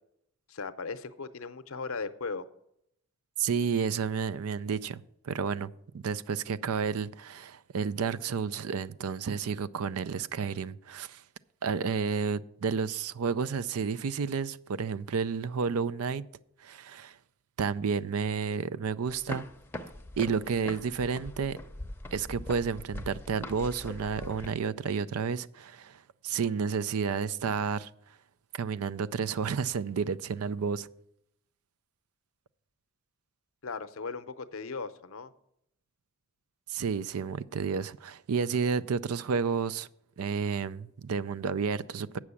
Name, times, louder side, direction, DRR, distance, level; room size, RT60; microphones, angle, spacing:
voice 1, 0.5-2.5 33.6-35.3, left 4 dB, 70° left, 0.7 m, -37 dB
voice 2, 3.4-5.7 6.0-11.2 11.6-16.2 16.6-17.2 17.6-19.4 20.2-21.6 22.1-27.9 28.5-30.9 36.7-39.9 40.2-42.2, right 6 dB, 85° right, 0.4 m, -31 dB
sound 1, 19.1-24.5, left 1 dB, 10° left, 0.6 m, -42 dB
8.5 x 6.1 x 8.2 m
head